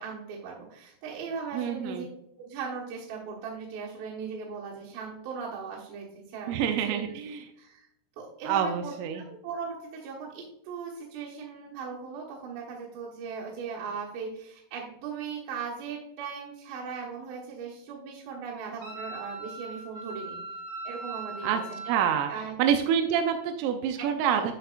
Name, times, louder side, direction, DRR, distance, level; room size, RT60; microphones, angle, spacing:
voice 1, 0.0-2.1 2.4-7.1 7.6-7.9 8.2-20.4 20.8-21.8 22.3-22.8 24.0-24.5, right 5 dB, 65° right, -6 dB, 3.3 m, -38 dB
voice 2, 1.5-2.1 6.5-7.4 8.5-9.2 21.4-21.6 21.9-22.3 22.6-24.5, right 8 dB, 85° right, 5 dB, 3.1 m, -27 dB
Wind instrument woodwind instrument, 18.8-22.0, right 2 dB, 45° right, 2.4 m, -39 dB
10.0 x 5.8 x 2.4 m, 0.79 s
omnidirectional pair, 5.8 m